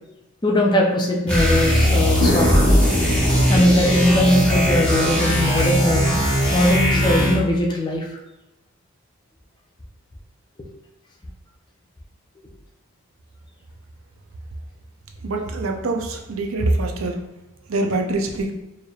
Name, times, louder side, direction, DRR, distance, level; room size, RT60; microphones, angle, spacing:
voice 1, 0.4-2.6 3.5-6.1 6.5-8.1 10.6-10.7, left 1 dB, 20° left, -1 dB, 0.5 m, -20 dB
sound 1, 1.3-7.5, equal, 5° left, 0.9 m, -19 dB
sound 2, 2.2-6.1, left 1 dB, 55° left, 1.3 m, -26 dB
voice 2, 15.2-17.2 17.7-18.5, right 2 dB, 75° right, 3 dB, 0.5 m, -24 dB
4.4 x 3.2 x 2.3 m, 1.0 s
head